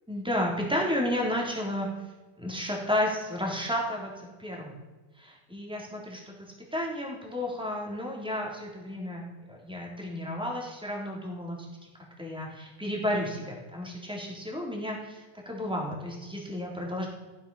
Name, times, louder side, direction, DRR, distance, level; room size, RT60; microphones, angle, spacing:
voice 1, 0.1-1.9 2.4-4.1 4.4-4.8 5.2-6.2 6.7-9.2 9.5-11.6 12.2-17.1, left 1 dB, ahead, -2 dB, 3.0 m, -32 dB
15.0 x 12.0 x 5.6 m, 1.2 s
omnidirectional pair, 4.2 m